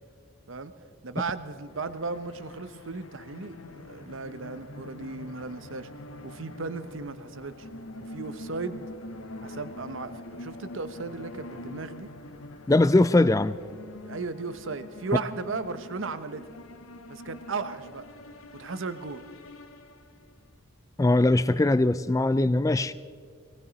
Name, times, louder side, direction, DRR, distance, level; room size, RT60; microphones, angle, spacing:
voice 1, 1.0-5.9 6.2-7.7 8.0-8.9 9.4-12.1 14.1-16.6 17.1-18.0 18.5-19.2, right 4 dB, 70° right, 12 dB, 0.8 m, -36 dB
sound 1, 1.6-20.4, left 2 dB, 85° left, 0.9 m, -45 dB
voice 2, 12.7-13.6 21.0-22.9, left 2 dB, 15° left, 14 dB, 0.3 m, -21 dB
19.0 x 18.5 x 4.1 m, 2.1 s
head